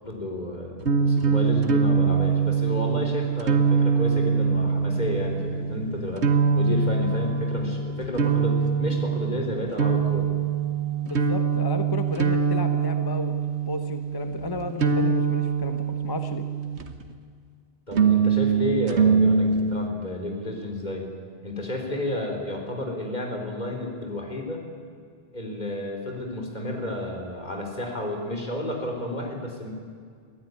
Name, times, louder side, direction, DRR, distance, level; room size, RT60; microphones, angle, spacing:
voice 1, 0.0-6.3 6.5-10.3 17.9-21.1 21.4-24.6 25.3-29.7, left 1 dB, 40° left, 2 dB, 4.1 m, -31 dB
sound 1, 0.8-17.1 17.9-19.9, right 5 dB, 80° right, 1.6 m, -23 dB
voice 2, 11.0-16.4, left 2 dB, 20° left, 8 dB, 1.0 m, -33 dB
23.5 x 15.5 x 9.6 m, 2.1 s
omnidirectional pair, 1.1 m